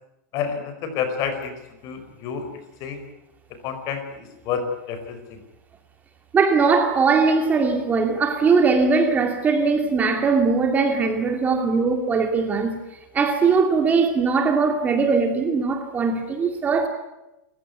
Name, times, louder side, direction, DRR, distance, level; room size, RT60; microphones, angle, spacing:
voice 1, 0.3-1.5 1.8-2.5 2.8-3.0 3.6-5.4, left 7 dB, 40° left, 4.9 m, -29 dB
voice 2, 6.3-12.8 13.1-16.9, right 4 dB, 15° right, 2.5 m, -20 dB
28.5 x 15.5 x 9.6 m
supercardioid pair, 155°, 9 cm